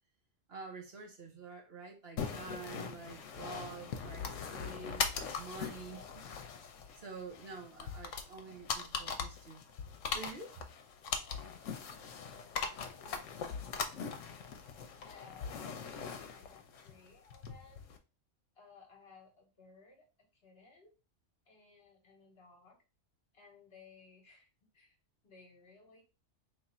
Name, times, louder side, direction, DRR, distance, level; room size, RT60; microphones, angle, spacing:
voice 1, 0.5-4.3 4.5-6.2 7.0-9.6 10.1-10.6, right 4 dB, 55° right, 1.1 m, -48 dB
sound 1, 2.2-18.0, left 6 dB, 80° left, 0.9 m, -41 dB
voice 2, 15.0-17.8 18.6-20.1 20.3-20.9 21.5-22.8 23.3-24.5 24.7-25.0 25.2-26.0, left 4 dB, 55° left, 1.1 m, -60 dB
3.2 x 2.5 x 4.2 m
omnidirectional pair, 1.3 m